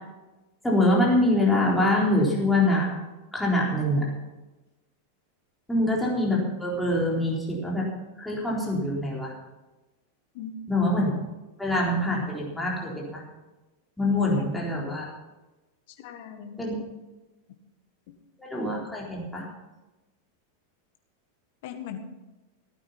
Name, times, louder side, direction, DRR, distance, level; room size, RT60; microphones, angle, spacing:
voice 1, 0.6-2.9 3.3-4.0 5.7-7.9 8.2-9.3 10.7-11.1 11.6-13.2 14.0-15.1 16.6-16.7 18.4-19.5, left 1 dB, 5° left, -4 dB, 3.8 m, -24 dB
voice 2, 16.0-16.7 18.1-18.2 21.6-22.0, left 9 dB, 50° left, 7 dB, 1.6 m, -39 dB
16.5 x 9.0 x 5.8 m, 1.1 s
figure-of-eight pair, 90°, 0 cm